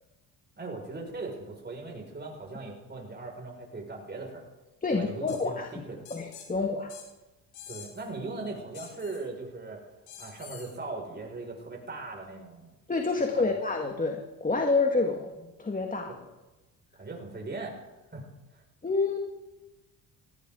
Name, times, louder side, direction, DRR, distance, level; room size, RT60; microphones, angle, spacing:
voice 1, 0.6-4.5 4.9-6.0 7.7-9.8 10.2-12.7 13.3-13.5 16.9-17.8 18.1-18.2 18.5-18.6, right 3 dB, 30° right, 0 dB, 6.0 m, -39 dB
voice 2, 4.8-5.8 6.1-6.9 12.9-16.1 18.8-19.2, left 3 dB, 20° left, 3 dB, 1.9 m, -28 dB
sound 1, 5.3-5.4 6.1-6.5 6.9-7.1 7.5-8.1 8.7-9.2 10.1-10.7, left 8 dB, 85° left, 4.0 m, -46 dB
18.0 x 16.0 x 4.0 m, 1.1 s
supercardioid pair, 75°, 37 cm